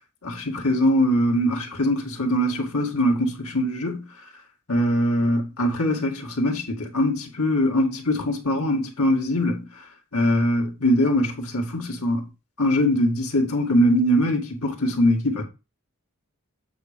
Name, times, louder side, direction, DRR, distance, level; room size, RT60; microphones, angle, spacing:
voice 1, 0.2-4.1 4.7-9.8 10.1-12.3 12.6-15.4, equal, 80° left, 2.2 m, -22 dB
8.5 x 4.2 x 5.1 m
head